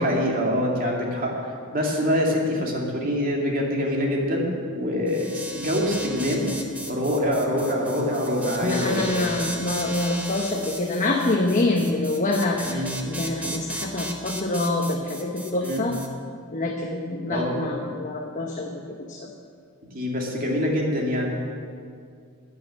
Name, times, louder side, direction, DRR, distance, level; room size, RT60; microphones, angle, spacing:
voice 1, 0.0-6.5 6.8-9.3 12.6-12.9 15.6-15.9 17.3-17.6 19.9-21.3, equal, 40° right, -1 dB, 2.4 m, -25 dB
sound 1, 5.1-16.1, right 1 dB, 5° right, 1.2 m, -36 dB
voice 2, 8.6-15.9 16.5-19.3, left 2 dB, 35° left, 0 dB, 1.0 m, -26 dB
13.0 x 9.0 x 7.5 m, 2.2 s
head